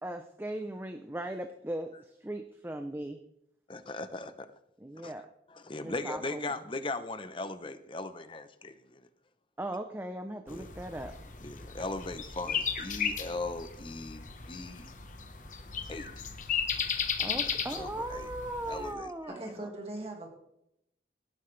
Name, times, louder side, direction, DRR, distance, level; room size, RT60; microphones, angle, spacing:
voice 1, 0.0-3.2 4.8-5.3 5.8-6.6 9.6-11.3 17.2-19.5, right 1 dB, 10° right, 7 dB, 0.5 m, -38 dB
voice 2, 3.7-4.5 5.0-5.1 5.5-9.1 10.5-10.7 11.4-14.9 15.9-16.1 17.3-18.3 18.7-19.1, left 2 dB, 30° left, 11 dB, 0.7 m, -39 dB
sound 1, 10.5-18.9, left 7 dB, 45° left, 1.1 m, -36 dB
voice 3, 19.3-20.3, right 1 dB, 35° right, 1 dB, 2.1 m, -40 dB
18.0 x 9.6 x 3.3 m, 0.80 s
head